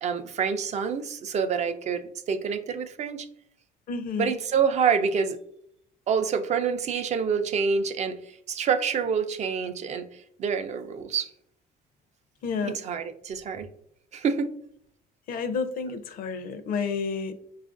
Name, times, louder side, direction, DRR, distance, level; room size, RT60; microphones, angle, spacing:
voice 1, 0.0-3.3 4.2-5.4 6.1-8.2 8.5-10.1 10.4-11.3 12.6-13.7 14.1-14.5, right 6 dB, 40° right, 8 dB, 0.4 m, -27 dB
voice 2, 3.9-4.3 12.4-12.8 15.3-17.3, left 5 dB, 60° left, 10 dB, 0.5 m, -30 dB
5.1 x 2.4 x 2.4 m, 0.69 s
cardioid pair, 110°, 17 cm